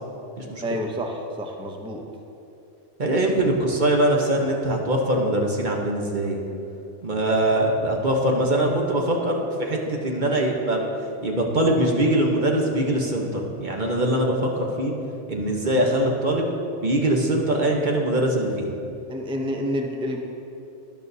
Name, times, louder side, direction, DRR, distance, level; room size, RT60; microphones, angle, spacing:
voice 1, 0.6-2.0 19.1-20.2, equal, 5° right, 2 dB, 0.6 m, -29 dB
voice 2, 3.0-6.4 7.0-10.9 11.2-14.9 15.3-16.5 16.8-18.7, right 1 dB, 45° right, 0 dB, 1.1 m, -22 dB
12.5 x 10.5 x 2.7 m, 2.8 s
omnidirectional pair, 1.2 m